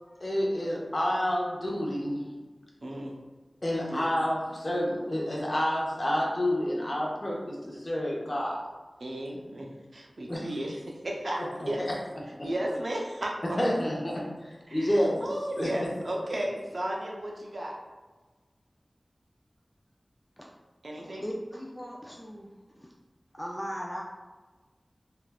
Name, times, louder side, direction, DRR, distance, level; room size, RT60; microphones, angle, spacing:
voice 1, 0.2-2.2 3.6-8.7 10.3-10.5 11.4-11.7 12.4-12.5 13.6-15.3 15.6-15.7, equal, 45° left, -3 dB, 0.7 m, -29 dB
voice 2, 2.8-3.1 3.9-4.0 9.0-11.9 12.4-13.9 14.7-17.8 20.8-21.2, right 1 dB, 70° right, -1 dB, 0.5 m, -34 dB
voice 3, 21.0-22.5 22.8-22.9 23.3-24.0, equal, 10° left, -2 dB, 0.3 m, -38 dB
3.3 x 2.4 x 2.2 m, 1.3 s
wide cardioid pair, 65°, 0 cm